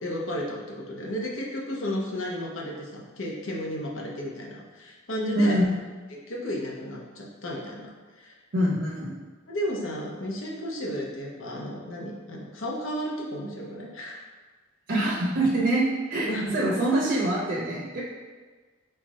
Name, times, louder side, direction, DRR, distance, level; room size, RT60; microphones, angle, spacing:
voice 1, 0.0-5.6 6.1-7.9 8.2-8.4 9.5-14.2 16.3-16.5, equal, 75° left, -2 dB, 0.9 m, -33 dB
voice 2, 8.5-9.1 14.9-15.8 16.1-18.0, right 1 dB, 55° right, -6 dB, 0.8 m, -24 dB
4.5 x 2.5 x 4.2 m, 1.4 s
head